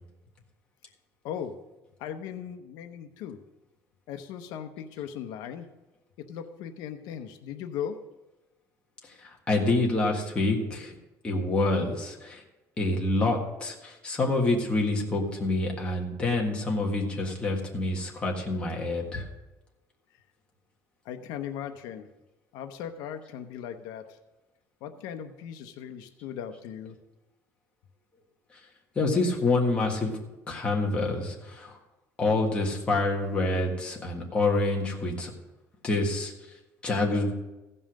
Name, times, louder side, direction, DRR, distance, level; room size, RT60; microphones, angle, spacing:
voice 1, 1.2-1.6 2.0-3.4 4.1-5.7 6.2-8.0 21.0-22.1 22.5-24.2 24.8-27.0, left 8 dB, 80° left, 7 dB, 0.7 m, -38 dB
voice 2, 9.2-10.9 11.2-12.4 12.8-19.2 28.9-30.1 30.5-31.8 32.2-35.3 35.8-36.3 36.8-37.3, left 2 dB, 15° left, -1 dB, 1.6 m, -27 dB
15.0 x 5.5 x 6.3 m, 1.1 s
cardioid pair, 170°, 7 cm